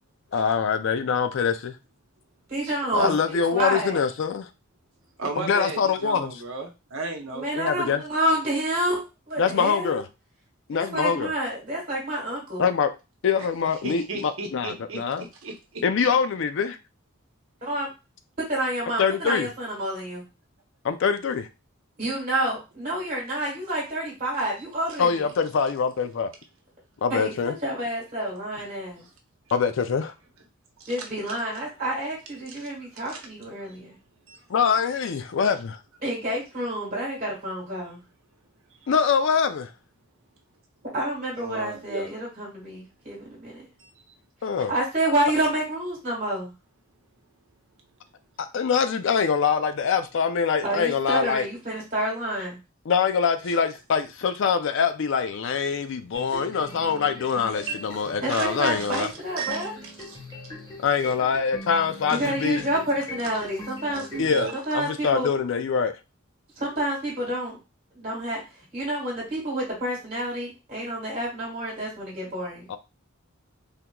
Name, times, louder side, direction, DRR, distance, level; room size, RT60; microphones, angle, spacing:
voice 1, 0.3-1.8 2.9-4.4 5.4-6.3 7.6-8.0 9.4-10.0 10.7-11.3 12.6-12.9 13.2-15.2 15.8-16.8 19.0-19.5 20.8-21.5 25.0-26.3 27.0-27.5 29.5-30.1 34.5-35.8 38.9-39.7 44.4-44.7 48.4-51.5 52.9-59.1 60.8-62.7 64.2-64.5 64.7-66.0 72.7-72.8, left 6 dB, 65° left, 0.4 m, -24 dB
voice 2, 2.5-4.0 7.3-10.0 10.7-12.7 17.6-17.9 18.5-20.2 22.0-25.2 27.1-29.0 30.9-33.9 36.0-38.0 40.9-43.6 44.7-46.5 50.6-52.6 58.2-59.7 62.1-64.0 64.5-65.3 66.6-67.6 67.9-72.7, right 1 dB, 45° right, 1.6 m, -29 dB
voice 3, 5.2-7.5 13.8-15.8 28.2-28.3 29.0-29.1 30.8-31.0 32.6-32.7 33.1-33.2 33.7-33.8 34.3-34.4 41.4-42.1 43.8-44.1 53.5-53.6 56.3-56.4 57.6-58.0 58.3-58.5 58.7-59.1 59.4-60.2 62.1-62.2 63.8-64.6, right 3 dB, 75° right, 0.8 m, -35 dB
sound 1, 56.1-64.4, left 1 dB, 20° left, 1.4 m, -41 dB
3.6 x 2.9 x 2.2 m
head